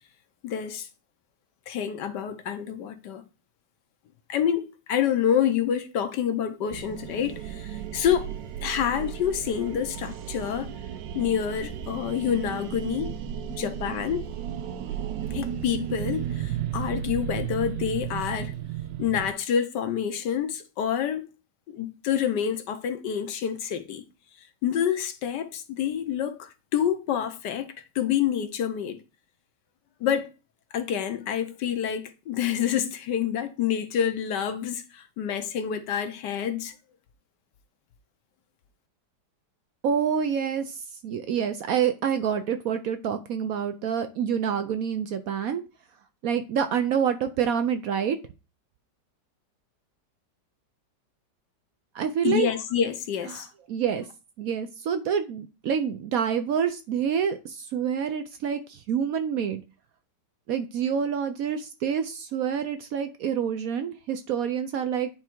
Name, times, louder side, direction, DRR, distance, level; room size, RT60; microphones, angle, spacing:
voice 1, 0.4-0.9 1.7-3.3 4.3-8.3 8.6-10.7 11.1-13.1 13.5-14.2 15.3-18.5 19.0-21.3 21.7-24.0 24.6-29.0 30.0-30.3 30.7-36.7 52.2-53.5, left 9 dB, 75° left, 1.4 m, -27 dB
sound 1, 6.7-19.3, right 10 dB, 90° right, 1.3 m, -34 dB
voice 2, 39.8-45.6 46.2-48.2 51.9-52.5 53.3-53.4 53.7-54.0 54.4-59.6 60.5-65.1, right 7 dB, 65° right, 0.9 m, -27 dB
9.4 x 3.5 x 4.5 m
omnidirectional pair, 1.9 m